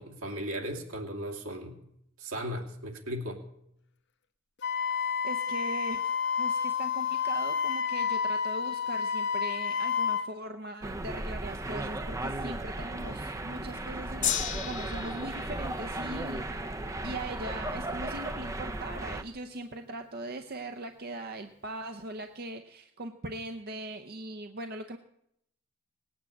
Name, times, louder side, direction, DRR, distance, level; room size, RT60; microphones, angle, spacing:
voice 1, 0.0-1.8 2.2-3.4, equal, 75° right, 1 dB, 2.7 m, -36 dB
Wind instrument woodwind instrument, 4.6-10.3, left 6 dB, 55° left, 1.0 m, -30 dB
voice 2, 5.2-6.1 6.4-25.0, right 1 dB, 45° right, 6 dB, 0.8 m, -40 dB
sound 1, 10.8-19.2, right 2 dB, 15° right, 0.6 m, -36 dB
Gong, 14.2-20.6 21.4-21.5, left 9 dB, 35° left, 1.2 m, -38 dB
19.0 x 8.9 x 8.5 m, 0.77 s
head